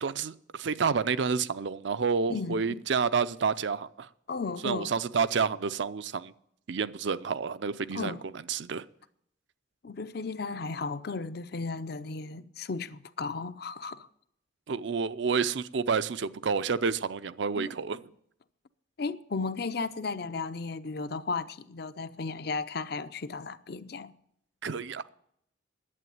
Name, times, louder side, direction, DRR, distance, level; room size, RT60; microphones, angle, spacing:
voice 1, 0.0-4.1 4.6-6.3 6.7-8.1 8.5-8.9 14.7-18.0 24.6-25.1, right 5 dB, 65° right, 0.5 m, -29 dB
voice 2, 2.3-2.8 4.3-4.9 7.9-8.2 9.8-14.1 17.6-17.7 19.0-24.1, left 4 dB, 55° left, 0.5 m, -35 dB
11.0 x 8.5 x 9.3 m
head